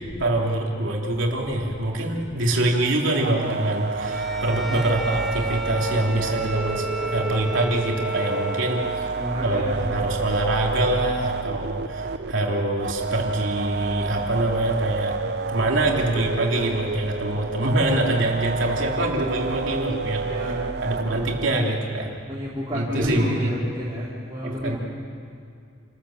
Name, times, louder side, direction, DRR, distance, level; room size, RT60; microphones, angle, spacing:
voice 1, 0.2-8.8 9.4-15.1 15.5-22.2 22.7-23.5 24.4-24.8, right 1 dB, 70° right, -1 dB, 3.2 m, -24 dB
sound 1, 3.2-21.5, right 4 dB, 50° right, 0.5 m, -30 dB
Bowed string instrument, 4.0-9.3, right 1 dB, ahead, 1.1 m, -34 dB
voice 2, 9.2-9.7 20.2-20.8 22.2-24.8, equal, 20° right, -8 dB, 3.9 m, -30 dB
29.5 x 14.5 x 7.4 m, 2.3 s
head